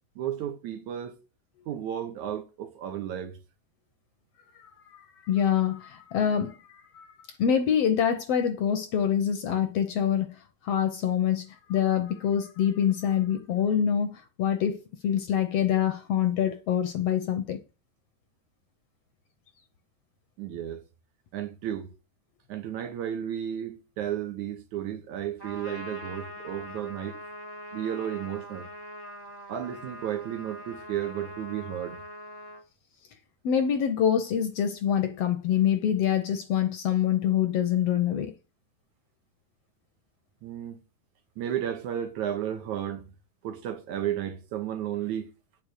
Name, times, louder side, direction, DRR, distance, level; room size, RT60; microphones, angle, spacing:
voice 1, 0.2-1.1 1.7-3.3 20.4-20.8 21.3-21.9 22.5-27.2 27.7-28.7 29.5-32.0 40.4-40.8 41.4-43.1 43.4-45.3, right 10 dB, 75° right, 2.7 m, -33 dB
voice 2, 5.2-6.6 6.9-7.1 7.4-10.3 10.6-17.6 33.4-38.3, left 9 dB, 70° left, 1.6 m, -25 dB
Trumpet, 25.4-32.6, left 1 dB, 10° right, 1.3 m, -42 dB
9.6 x 6.2 x 6.4 m
omnidirectional pair, 3.5 m